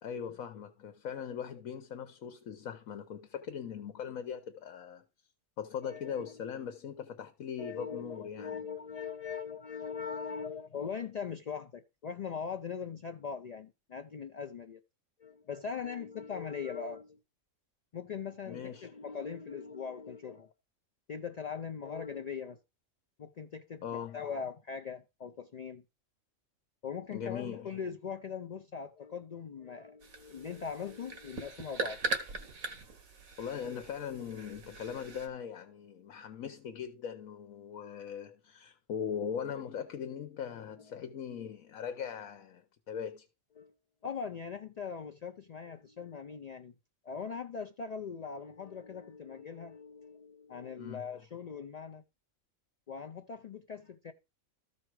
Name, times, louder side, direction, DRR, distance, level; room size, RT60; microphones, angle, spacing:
voice 1, 0.0-5.0 5.6-8.6 18.5-18.9 23.8-24.3 27.1-27.7 33.4-43.3 50.8-51.0, left 7 dB, 85° left, 1.3 m, -40 dB
voice 2, 5.8-6.3 7.6-14.8 15.2-17.2 17.9-20.5 21.1-22.6 23.2-25.8 26.8-32.0 34.1-34.5 43.6-43.7 44.0-46.7 47.0-52.0 52.9-54.1, left 6 dB, 55° left, 0.4 m, -41 dB
sound 1, 30.0-35.3, right 4 dB, 85° right, 1.8 m, -40 dB
13.5 x 5.2 x 4.7 m
omnidirectional pair, 1.4 m